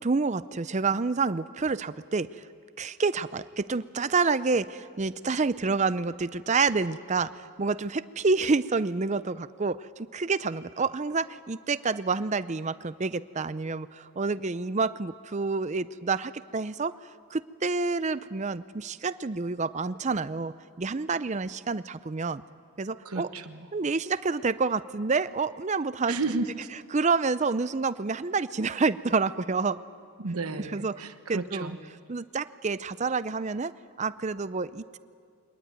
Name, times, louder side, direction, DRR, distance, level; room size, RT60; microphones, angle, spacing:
voice 1, 0.0-2.4 2.8-17.0 17.3-22.4 22.8-23.3 23.7-26.2 26.9-29.8 30.7-31.0 31.3-31.7 32.1-35.0, right 4 dB, 30° right, 15 dB, 0.5 m, -28 dB
voice 2, 23.0-23.7 26.1-26.7 30.2-31.8, right 3 dB, 85° right, 8 dB, 1.1 m, -33 dB
23.5 x 19.5 x 9.4 m, 2.3 s
head